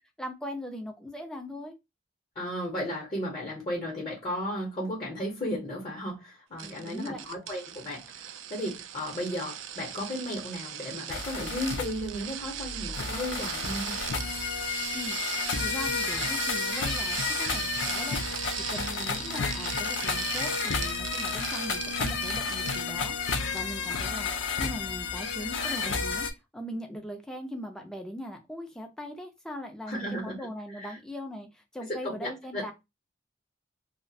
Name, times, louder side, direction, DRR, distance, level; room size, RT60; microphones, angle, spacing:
voice 1, 0.2-1.7 6.6-7.3 14.9-15.3 15.6-18.2 18.5-26.3 26.5-32.7, left 1 dB, 5° left, 0.4 m, -40 dB
voice 2, 2.3-13.9 25.6-25.9 29.9-30.5 30.7-31.0 31.9-32.7, equal, 35° left, 0.8 m, -35 dB
sound 1, 6.6-23.0 23.3-23.6 23.9-24.0, right 10 dB, 75° right, 0.3 m, -38 dB
sound 2, 11.1-26.3, left 5 dB, 70° left, 0.4 m, -31 dB
2.3 x 2.1 x 2.6 m
head